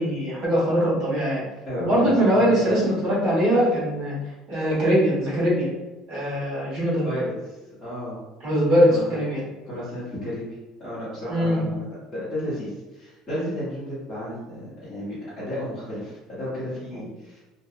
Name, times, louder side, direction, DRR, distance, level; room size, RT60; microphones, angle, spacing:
voice 1, 0.0-1.4 1.8-4.1 4.5-5.7 6.1-7.0 8.4-9.4 11.3-11.6 16.9-17.0, equal, 45° right, -6 dB, 1.1 m, -21 dB
voice 2, 1.6-2.3 2.6-2.8 7.0-8.2 8.8-9.1 9.7-10.5 10.8-17.4, left 1 dB, 10° left, -14 dB, 0.9 m, -33 dB
2.7 x 2.3 x 2.3 m, 1.1 s
cardioid pair, 170°, 0 cm